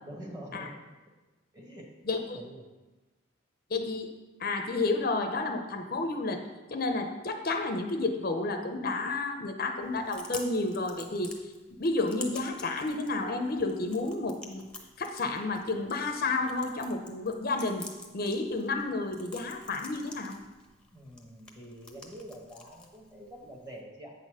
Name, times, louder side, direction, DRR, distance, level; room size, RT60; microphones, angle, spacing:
voice 1, 0.0-0.8 1.5-2.7 20.9-24.1, equal, 20° right, 0 dB, 1.3 m, -46 dB
voice 2, 2.0-2.4 3.7-4.1 4.4-6.4 6.7-11.3 11.8-14.6 15.0-17.9 18.1-20.4, left 3 dB, 50° left, 5 dB, 0.6 m, -31 dB
Chewing mastication, 9.8-23.8, left 2 dB, 5° left, 0.8 m, -49 dB
8.4 x 4.1 x 6.2 m, 1.2 s
head